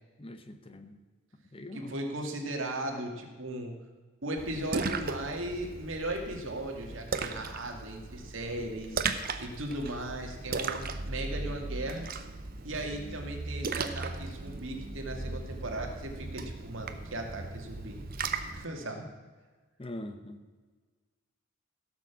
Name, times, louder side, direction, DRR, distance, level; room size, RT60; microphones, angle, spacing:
voice 1, 0.2-1.0 1.5-1.9 19.8-20.4, left 1 dB, 25° left, 8 dB, 0.8 m, -42 dB
voice 2, 1.7-3.7 4.2-9.0 9.4-12.1 12.6-18.0 18.5-19.1, right 1 dB, 65° right, 2 dB, 2.2 m, -37 dB
Splash splatter, 4.4-18.7, right 4 dB, 45° right, 0.8 m, -37 dB
16.5 x 6.7 x 7.1 m, 1.4 s
head